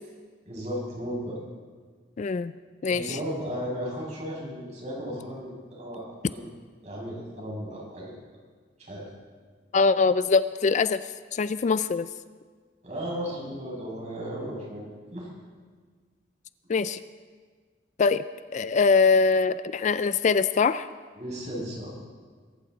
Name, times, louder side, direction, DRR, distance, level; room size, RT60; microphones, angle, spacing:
voice 1, 0.4-1.4 2.9-6.5 6.8-8.1 8.8-9.0 12.8-14.8 15.1-15.3 21.2-22.0, equal, 40° right, -3 dB, 6.3 m, -35 dB
voice 2, 2.2-2.5 2.8-3.2 9.7-11.0 11.3-12.1 16.7-17.0 18.0-18.2 18.5-20.9, left 4 dB, 40° left, 14 dB, 0.3 m, -22 dB
22.5 x 14.5 x 4.0 m, 1.5 s
head